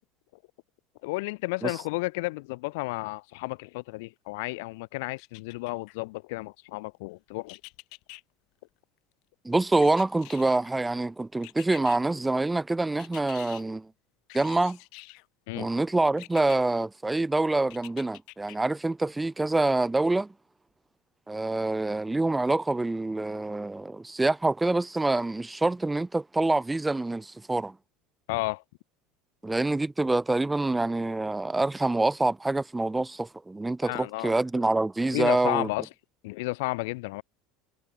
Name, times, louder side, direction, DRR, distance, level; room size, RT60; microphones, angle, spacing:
voice 1, 1.0-7.6 15.5-15.7 28.3-28.6 33.8-34.3 35.1-35.9 36.2-37.2, left 24 dB, 75° left, 0.8 m, -32 dB
sound 1, 5.2-6.0 7.5-8.2 9.8-10.7 11.4-12.0 13.0-13.6 14.3-15.3 16.2-16.6 17.7-18.6 19.0-19.1, left 28 dB, 55° left, 3.4 m, -47 dB
voice 2, 9.4-13.9 14.3-14.8 15.5-20.3 21.3-27.7 29.4-35.7, right 2 dB, 5° right, 0.7 m, -26 dB
cardioid pair, 160°, 0 cm